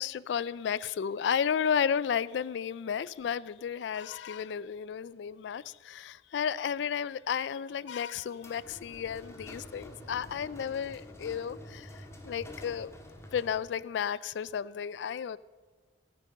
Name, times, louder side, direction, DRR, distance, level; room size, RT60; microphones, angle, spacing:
voice 1, 0.0-12.9 13.3-15.4, left 7 dB, 70° left, 0.3 m, -33 dB
sound 1, 8.3-13.8, equal, 15° left, 1.5 m, -48 dB
14.0 x 9.3 x 6.5 m
head